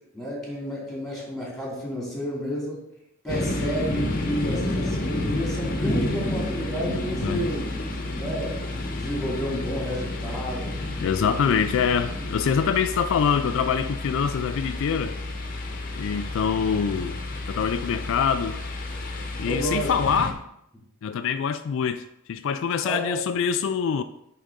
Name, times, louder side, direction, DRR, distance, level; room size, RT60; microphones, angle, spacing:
voice 1, 0.1-2.8 3.2-7.6 8.1-8.6 8.9-10.7 11.2-11.5 19.4-19.9 22.8-23.2, equal, ahead, 2.6 m, -31 dB
sound 1, 3.3-20.3, left 1 dB, 45° left, 0.9 m, -30 dB
voice 2, 11.0-15.2 16.0-17.2 17.5-18.6 19.4-20.4 21.0-24.0, left 7 dB, 65° left, 0.3 m, -25 dB
10.0 x 3.8 x 3.6 m
head